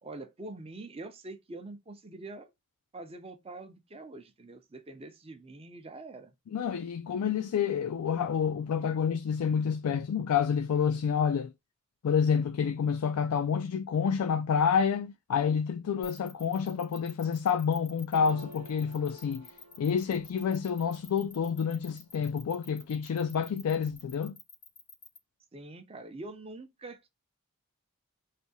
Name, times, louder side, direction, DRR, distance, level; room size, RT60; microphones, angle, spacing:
voice 1, 0.0-2.5 2.9-6.3 25.5-27.1, right 2 dB, 25° right, 0.5 m, -44 dB
voice 2, 6.5-11.5 12.0-19.5 19.8-24.4, left 7 dB, 85° left, 0.3 m, -28 dB
sound 1, 16.0-25.2, left 3 dB, 20° left, 0.5 m, -50 dB
sound 2, 18.1-22.0 22.5-23.0 23.3-24.1, right 1 dB, 80° right, 0.8 m, -51 dB
3.3 x 2.7 x 2.7 m
head